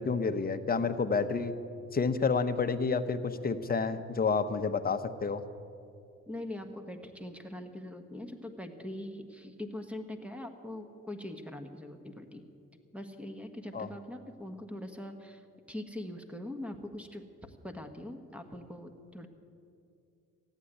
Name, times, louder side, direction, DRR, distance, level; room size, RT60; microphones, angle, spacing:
voice 1, 0.0-1.5 1.9-5.4 13.7-13.9, left 5 dB, 30° left, 9 dB, 0.9 m, -29 dB
voice 2, 6.3-12.4 12.9-19.3, left 1 dB, 5° right, 7 dB, 1.4 m, -42 dB
14.5 x 9.2 x 10.0 m, 2.5 s
cardioid pair, 90°, 30 cm